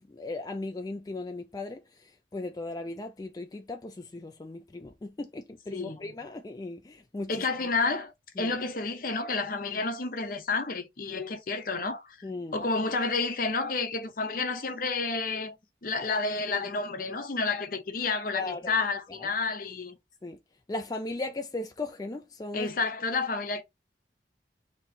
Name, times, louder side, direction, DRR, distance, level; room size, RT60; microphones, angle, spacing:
voice 1, 0.1-7.4 8.4-8.5 12.2-12.6 18.3-18.8 19.2-19.3 20.2-20.4 20.7-22.7, left 2 dB, 20° left, 0.3 m, -37 dB
voice 2, 7.3-12.3 12.5-15.5 15.8-20.0 22.5-23.6, left 3 dB, 50° left, 0.7 m, -30 dB
3.0 x 2.7 x 4.0 m
head